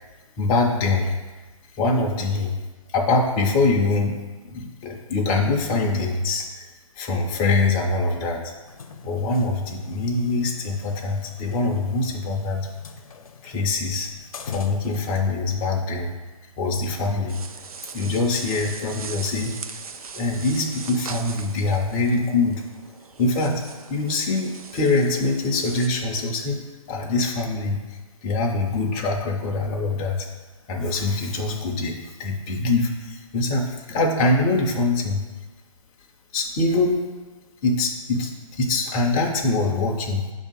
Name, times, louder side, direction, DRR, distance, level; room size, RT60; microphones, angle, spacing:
voice 1, 0.4-1.1 1.7-2.6 2.9-4.2 4.4-6.7 6.9-8.4 9.0-12.7 13.4-14.1 14.4-16.1 16.6-17.4 17.9-19.5 20.1-22.6 23.2-23.6 23.9-26.6 26.9-30.3 30.7-35.2 36.3-37.0 37.6-40.3, left 3 dB, 15° left, 0 dB, 0.4 m, -23 dB
sound 1, 8.6-15.3, left 5 dB, 75° left, 0.6 m, -43 dB
sound 2, 17.3-25.9, right 5 dB, 90° right, 0.5 m, -40 dB
6.7 x 2.7 x 5.3 m, 1.3 s
hypercardioid pair, 155°, 18 cm